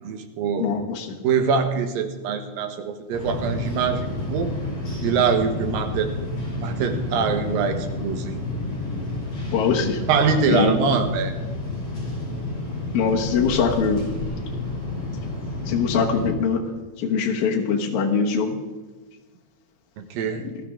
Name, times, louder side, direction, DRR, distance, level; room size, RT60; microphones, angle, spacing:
voice 1, 0.0-0.7 1.2-4.5 5.0-6.1 6.6-8.3 10.1-11.3 20.0-20.4, right 6 dB, 85° right, 7 dB, 2.9 m, -23 dB
voice 2, 0.6-1.1 9.5-10.0 10.5-10.8 12.9-14.1 15.7-16.6 17.0-18.6, left 6 dB, 65° left, 0 dB, 2.6 m, -22 dB
sound 1, 3.1-16.3, left 2 dB, 35° left, 4.9 m, -30 dB
19.5 x 12.5 x 3.6 m, 1.3 s
omnidirectional pair, 4.0 m